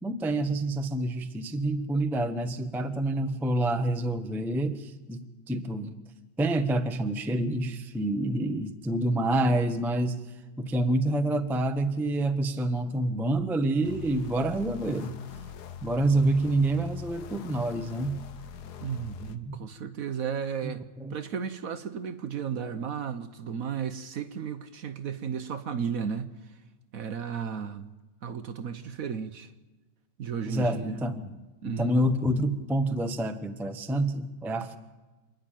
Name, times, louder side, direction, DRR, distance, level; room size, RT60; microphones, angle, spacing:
voice 1, 0.0-5.9 6.4-15.2 15.8-18.2 19.4-19.5 20.6-21.1 30.4-34.8, right 1 dB, ahead, 0.6 m, -28 dB
sound 1, 13.8-19.4, left 7 dB, 65° left, 1.4 m, -43 dB
voice 2, 18.8-20.8 21.1-26.5 26.9-27.9 28.2-29.5 30.2-31.0 31.6-32.0, right 7 dB, 60° right, 1.1 m, -34 dB
27.5 x 10.5 x 9.1 m
omnidirectional pair, 1.9 m